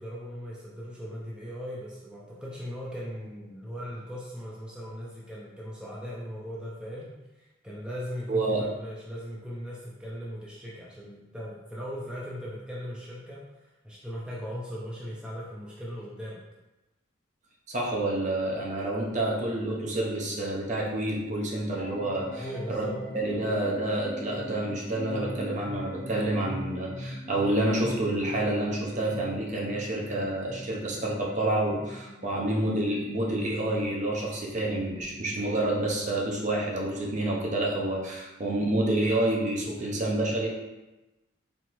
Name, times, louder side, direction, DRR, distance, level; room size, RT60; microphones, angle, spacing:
voice 1, 0.0-16.4 22.3-23.0, equal, 5° right, -6 dB, 0.5 m, -39 dB
voice 2, 8.3-8.6 17.7-22.8 23.1-40.5, right 1 dB, 40° right, -3 dB, 0.7 m, -28 dB
sound 1, 21.7-35.7, left 1 dB, 30° left, 0.9 m, -42 dB
4.3 x 3.2 x 3.0 m, 1.1 s
head